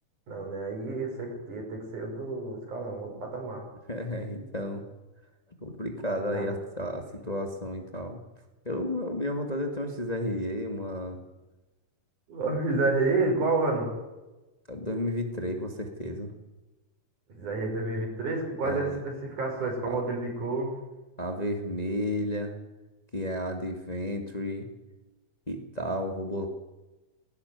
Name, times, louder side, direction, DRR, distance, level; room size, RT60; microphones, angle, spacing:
voice 1, 0.3-3.7 6.3-6.5 12.3-13.9 17.3-20.8, right 3 dB, 85° right, 1 dB, 7.6 m, -29 dB
voice 2, 3.9-4.8 5.6-8.2 8.7-11.2 14.7-16.3 18.6-19.0 19.8-20.0 21.2-22.5 23.1-24.7 25.5-26.5, left 1 dB, 15° left, 4 dB, 2.0 m, -32 dB
18.5 x 18.0 x 9.6 m, 1.1 s
omnidirectional pair, 3.4 m